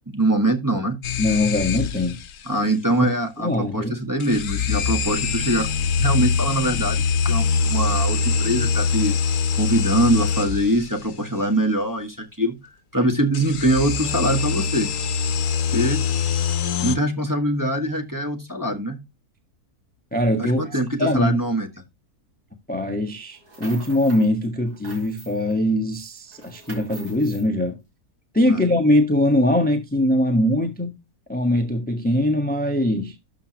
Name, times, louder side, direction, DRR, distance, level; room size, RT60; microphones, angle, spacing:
voice 1, 0.1-1.0 2.5-5.7 6.0-9.2 9.5-12.6 12.9-14.9 15.7-16.0 16.8-19.0 20.4-21.7 28.5-28.6, right 1 dB, 15° right, 1.5 m, -23 dB
sound 1, 1.0-2.3 4.2-10.9 13.3-17.0, left 5 dB, 60° left, 1.2 m, -23 dB
voice 2, 1.2-2.2 3.0-3.1 3.4-3.9 20.1-20.6 21.0-21.4 22.7-27.8 28.3-31.0 31.3-33.1, left 1 dB, 5° left, 1.2 m, -21 dB
sound 2, 23.3-24.3 24.6-25.6 25.9-27.5, right 2 dB, 80° right, 3.5 m, -44 dB
12.5 x 6.3 x 3.0 m
omnidirectional pair, 1.7 m